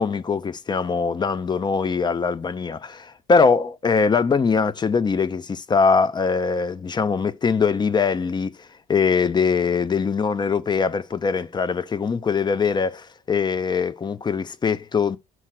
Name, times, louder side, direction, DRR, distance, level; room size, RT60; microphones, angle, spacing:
voice 1, 0.0-8.5 8.9-15.2, left 5 dB, 25° left, 0.6 m, -22 dB
6.3 x 4.4 x 5.8 m
cardioid pair, 110°, 17 cm